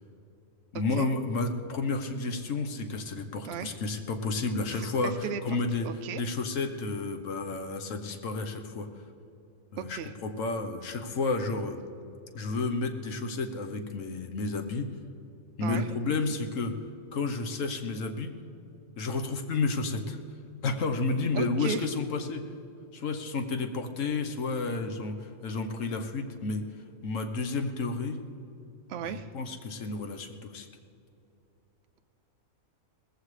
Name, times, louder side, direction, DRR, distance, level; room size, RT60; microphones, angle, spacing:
voice 1, 0.7-5.1 5.4-5.9 6.2-8.9 9.7-11.8 12.3-14.9 15.6-16.7 17.1-18.3 19.0-20.2 20.6-22.4 22.9-26.6 27.0-28.2 29.3-30.7, left 3 dB, 70° left, 5 dB, 1.4 m, -31 dB
voice 2, 4.7-5.6 5.8-6.2 9.8-10.1 15.6-15.9 21.3-21.9 28.9-29.3, right 7 dB, 65° right, 8 dB, 0.7 m, -36 dB
19.0 x 15.0 x 3.3 m, 2.7 s
omnidirectional pair, 1.4 m